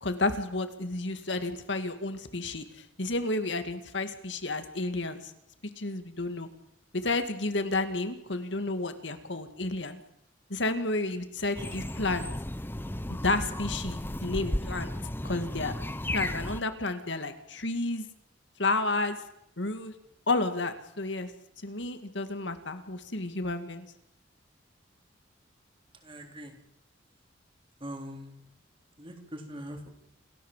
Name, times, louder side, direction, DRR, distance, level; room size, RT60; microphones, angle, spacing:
voice 1, 0.0-5.3 5.8-6.5 6.9-10.0 10.5-12.3 13.1-14.9 15.2-15.7 16.1-18.1 18.6-19.2 19.6-19.9 20.3-21.3 21.6-23.9, left 2 dB, 65° left, 8 dB, 2.3 m, -31 dB
sound 1, 11.5-16.6, left 1 dB, 10° left, 0.9 m, -34 dB
voice 2, 26.0-26.5 27.8-28.4 29.0-29.9, equal, 30° right, 4 dB, 3.8 m, -42 dB
28.5 x 14.5 x 7.5 m, 0.79 s
head